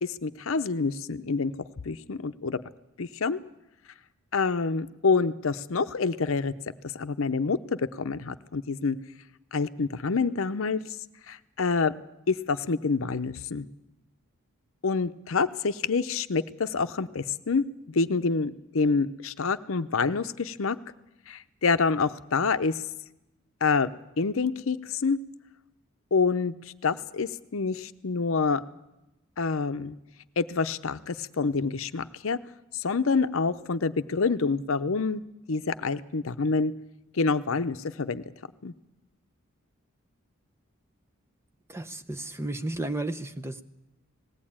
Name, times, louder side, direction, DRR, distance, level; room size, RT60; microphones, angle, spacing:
voice 1, 0.0-1.5 1.8-2.6 3.0-3.4 4.3-6.5 6.9-9.0 9.5-10.8 11.3-11.9 12.3-13.7 14.8-20.8 21.3-22.8 23.6-23.9 24.2-25.2 26.1-26.5 26.8-28.6 29.4-29.9 30.4-32.4 32.7-35.2 35.5-36.7 37.1-38.2 38.6-38.7, left 4 dB, 70° left, 11 dB, 0.7 m, -27 dB
voice 2, 41.7-43.6, right 2 dB, 10° right, 9 dB, 0.7 m, -33 dB
19.5 x 16.0 x 8.7 m, 0.94 s
head